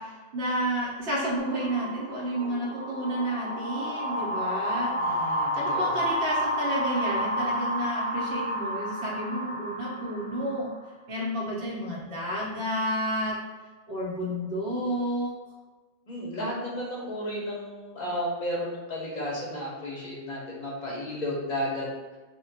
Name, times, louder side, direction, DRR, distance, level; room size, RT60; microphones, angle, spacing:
voice 1, 0.0-5.2 5.6-10.7 11.1-13.3 13.9-15.3, equal, 70° right, -5 dB, 0.9 m, -31 dB
sound 1, 1.4-10.8, equal, 5° right, 0.4 m, -31 dB
voice 2, 5.0-6.0 16.1-21.9, equal, 50° left, -4 dB, 0.6 m, -33 dB
2.2 x 2.1 x 3.8 m, 1.3 s
omnidirectional pair, 1.1 m